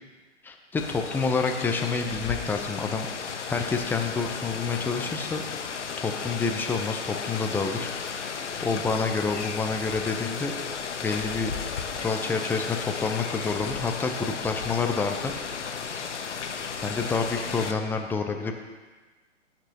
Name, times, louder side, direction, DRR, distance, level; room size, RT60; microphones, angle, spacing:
voice 1, 0.4-5.4 6.0-8.3 8.6-10.5 11.0-11.6 11.9-15.3 16.8-18.6, left 4 dB, 5° left, 4 dB, 0.7 m, -28 dB
Rain, 0.8-17.7, left 6 dB, 70° left, 1.2 m, -34 dB
19.0 x 8.8 x 3.0 m, 1.3 s
figure-of-eight pair, 120°, 37 cm